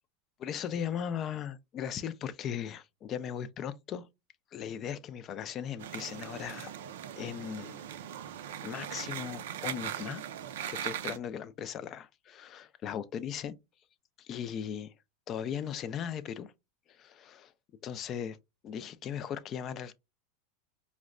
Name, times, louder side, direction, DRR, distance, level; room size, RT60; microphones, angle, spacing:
voice 1, 0.4-4.1 4.5-6.7 7.2-7.8 8.6-10.2 10.7-13.6 14.2-14.9 15.3-16.5 16.9-17.5 17.8-18.4 18.6-19.9, left 8 dB, 35° left, 0.4 m, -38 dB
sound 1, 5.8-11.2, right 10 dB, 80° right, 0.4 m, -40 dB
4.9 x 2.1 x 2.4 m
supercardioid pair, 125°, 0 cm